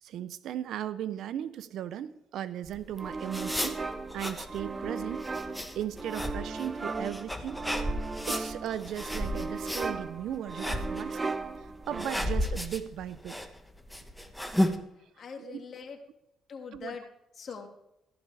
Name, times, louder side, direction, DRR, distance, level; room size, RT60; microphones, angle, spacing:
voice 1, 0.0-3.8 4.1-5.3 5.7-7.6 8.3-11.4 11.9-13.4 15.4-15.6 16.7-17.0, right 10 dB, 75° right, 15 dB, 0.6 m, -37 dB
sound 1, 2.7-14.8, left 1 dB, 5° left, 1.1 m, -34 dB
sound 2, 3.0-12.5, right 3 dB, 30° right, 0.7 m, -37 dB
voice 2, 14.9-16.0 16.5-17.0 17.4-17.7, left 6 dB, 55° left, 3 dB, 2.1 m, -43 dB
14.5 x 12.0 x 3.4 m, 0.85 s
cardioid pair, 90°, 0 cm